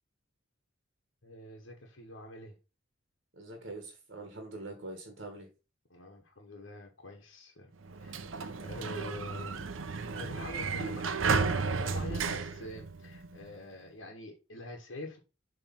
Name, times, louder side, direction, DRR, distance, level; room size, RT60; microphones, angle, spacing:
voice 1, 1.2-2.6 5.9-7.7 8.0-9.8 10.1-15.2, left 1 dB, 70° left, 1.3 m, -45 dB
voice 2, 3.4-5.5, right 2 dB, 60° right, 1.6 m, -44 dB
Sliding door, 7.8-13.5, right 4 dB, 80° right, 0.7 m, -33 dB
7.2 x 3.3 x 5.8 m
head